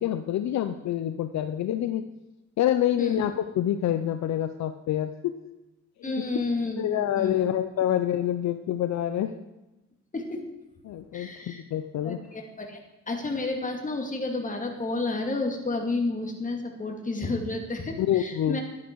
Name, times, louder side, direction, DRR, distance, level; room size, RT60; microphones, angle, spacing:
voice 1, 0.0-2.0 2.6-5.1 6.0-6.2 6.8-9.3 10.8-12.2 18.0-18.6, left 11 dB, 65° left, 10 dB, 0.7 m, -27 dB
voice 2, 6.0-7.5 10.1-10.4 11.1-11.6 12.0-12.8 13.1-18.6, left 2 dB, 25° left, 3 dB, 2.4 m, -31 dB
12.0 x 9.8 x 4.7 m, 1.0 s
cardioid pair, 90°, 30 cm